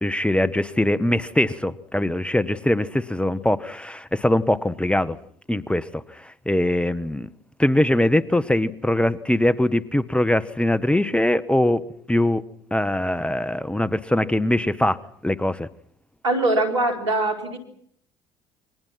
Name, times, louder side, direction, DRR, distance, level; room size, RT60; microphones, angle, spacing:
voice 1, 0.0-5.2 5.5-7.3 7.6-12.4 12.7-15.7, left 1 dB, 5° left, 15 dB, 1.4 m, -22 dB
voice 2, 16.2-17.6, right 2 dB, 90° right, 5 dB, 4.5 m, -22 dB
29.0 x 24.0 x 5.9 m, 0.65 s
hypercardioid pair, 60°, 15 cm